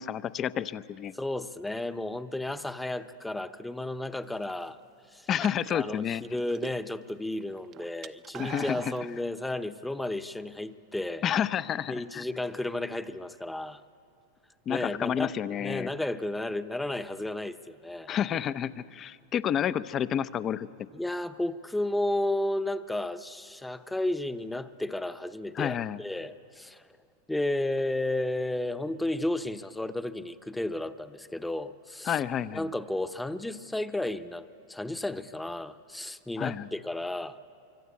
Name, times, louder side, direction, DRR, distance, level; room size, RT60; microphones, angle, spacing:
voice 1, 0.0-1.1 5.3-6.2 8.4-8.9 11.2-12.2 14.7-15.9 18.1-20.7 25.5-26.0 32.0-32.7 36.4-36.7, left 9 dB, 35° left, 15 dB, 0.8 m, -30 dB
voice 2, 1.1-4.8 5.1-5.3 5.7-11.2 11.9-13.8 14.7-15.3 15.6-18.1 20.9-26.8 27.3-32.2 32.5-37.4, left 1 dB, 5° left, 11 dB, 1.0 m, -33 dB
sound 1, 4.2-4.7 5.3-7.1 7.4-9.1, right 11 dB, 40° right, 0.9 m, -43 dB
25.0 x 24.5 x 8.4 m, 2.6 s
hypercardioid pair, 110°, 0 cm